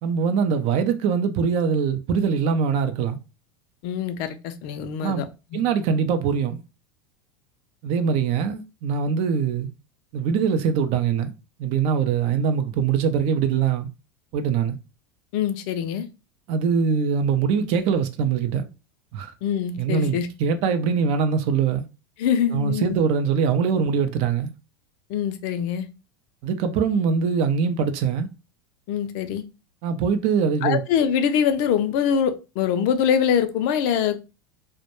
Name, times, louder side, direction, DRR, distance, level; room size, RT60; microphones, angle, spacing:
voice 1, 0.0-3.2 5.0-5.2 5.5-6.6 7.8-9.7 10.1-11.3 11.6-13.9 14.3-14.8 16.5-18.6 19.1-19.3 19.8-21.9 22.5-24.5 26.4-28.3 29.8-30.8, right 6 dB, 55° right, 0.4 m, -22 dB
voice 2, 3.8-5.3 5.5-5.6 15.3-16.1 19.4-20.3 22.2-23.0 25.1-25.9 28.9-29.4 30.6-34.2, left 8 dB, 55° left, 0.4 m, -24 dB
2.1 x 2.1 x 2.9 m
hypercardioid pair, 90°, 12 cm